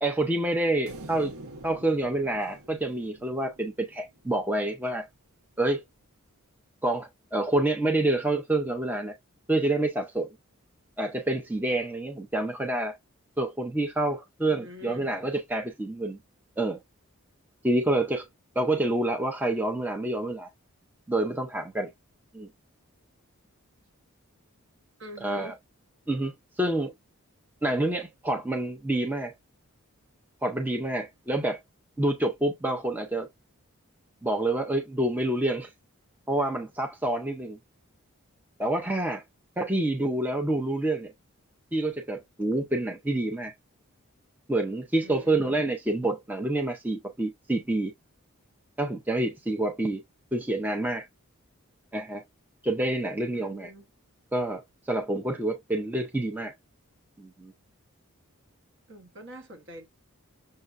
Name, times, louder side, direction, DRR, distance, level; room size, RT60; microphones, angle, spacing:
voice 1, 0.0-1.3 1.6-5.1 5.6-5.8 6.8-9.1 9.5-10.3 11.0-13.0 13.4-16.2 16.6-16.8 17.6-18.2 18.6-20.5 21.1-21.9 22.3-22.5 25.2-25.5 26.1-26.9 27.6-29.3 30.4-31.6 32.0-33.3 34.2-35.7 36.3-37.6 38.6-39.2 39.6-41.1 41.7-43.5 44.5-47.9 48.8-50.0 50.3-51.1 51.9-52.2 52.6-53.7 54.3-56.5 57.2-57.5, right 1 dB, 10° right, 0.5 m, -27 dB
sound 1, 0.9-4.2, right 2 dB, 75° right, 0.8 m, -46 dB
voice 2, 14.5-15.1 25.0-25.6 45.0-45.5 53.3-53.9 58.9-59.9, left 1 dB, 55° right, 1.0 m, -45 dB
6.5 x 2.2 x 2.4 m
head